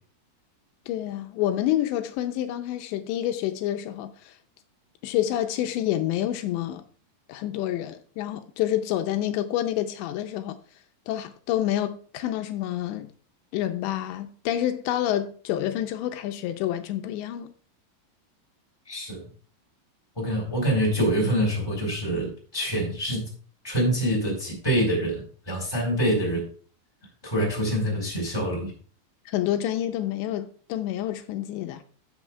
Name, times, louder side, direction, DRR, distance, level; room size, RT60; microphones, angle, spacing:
voice 1, 0.9-4.3 5.0-6.8 7.3-10.6 11.1-13.1 13.5-17.5 29.3-31.8, left 12 dB, 85° left, 2.9 m, -28 dB
voice 2, 18.9-19.2 20.2-23.3 23.6-26.5 27.2-28.7, equal, 5° left, 3.4 m, -25 dB
16.5 x 6.2 x 2.3 m
omnidirectional pair, 5.1 m